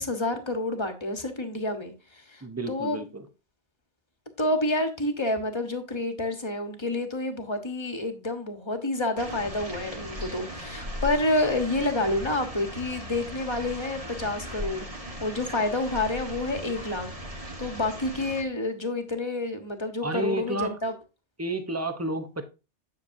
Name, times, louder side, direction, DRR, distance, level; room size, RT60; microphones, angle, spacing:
voice 1, 0.0-3.0 4.4-14.9 15.2-17.1 17.6-20.9, left 2 dB, 25° left, 1.3 m, -29 dB
voice 2, 2.4-3.3 20.0-20.8 21.4-22.4, right 2 dB, 15° right, 0.8 m, -31 dB
sound 1, 9.2-18.4, equal, 30° right, 1.5 m, -38 dB
10.5 x 6.6 x 2.7 m
omnidirectional pair, 1.2 m